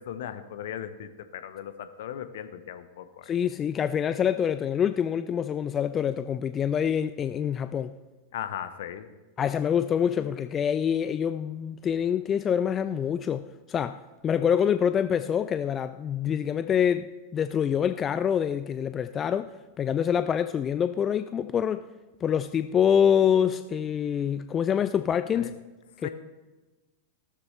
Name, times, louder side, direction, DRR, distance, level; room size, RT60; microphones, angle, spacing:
voice 1, 0.0-3.2 8.3-9.1 25.3-25.5 26.0-26.1, left 10 dB, 55° left, 0.9 m, -37 dB
voice 2, 3.2-7.9 9.4-14.0 14.2-21.8 22.2-25.5 26.0-26.1, left 8 dB, 25° left, 0.3 m, -26 dB
14.5 x 13.0 x 3.2 m
figure-of-eight pair, 90°, 0 cm